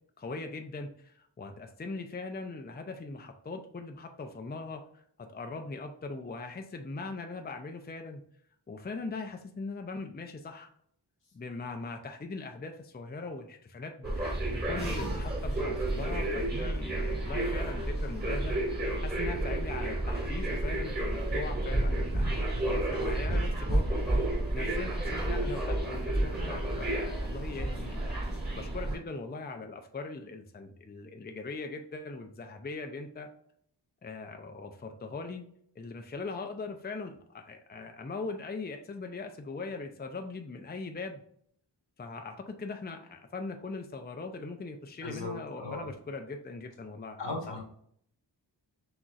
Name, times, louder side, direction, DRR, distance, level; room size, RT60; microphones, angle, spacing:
voice 1, 0.2-8.2 8.7-10.7 11.3-18.6 19.0-33.3 34.0-35.5 35.8-41.2 42.0-47.6, left 3 dB, 25° left, 5 dB, 0.5 m, -40 dB
sound 1, 14.0-29.0, right 1 dB, 20° right, 1.6 m, -31 dB
voice 2, 45.0-45.9 47.2-47.6, left 2 dB, 80° left, 0 dB, 1.4 m, -37 dB
6.2 x 2.9 x 2.4 m, 0.64 s
wide cardioid pair, 65°, 43 cm